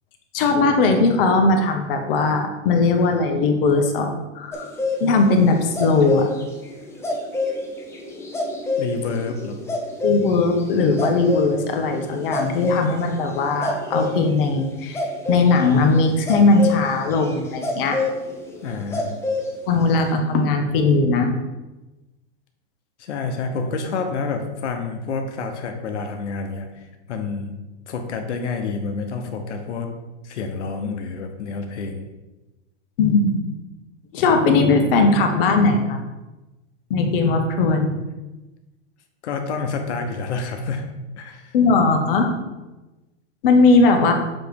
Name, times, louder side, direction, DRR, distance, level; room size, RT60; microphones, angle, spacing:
voice 1, 0.3-4.7 5.0-6.3 10.0-18.0 19.7-21.3 33.0-33.4 34.1-36.0 36.9-37.9 41.5-42.3 43.4-44.1, left 3 dB, 55° left, 4 dB, 1.2 m, -19 dB
sound 1, 4.5-14.2 14.9-19.5 19.7-20.0, left 2 dB, 10° left, 0.6 m, -27 dB
voice 2, 8.8-9.6 18.6-19.2 23.0-26.8 27.1-27.6 27.9-29.9 30.2-32.1 39.2-40.8 41.2-41.5 44.0-44.1, left 4 dB, 85° left, 5 dB, 1.0 m, -28 dB
7.5 x 3.1 x 5.2 m, 1.1 s
supercardioid pair, 145°, 34 cm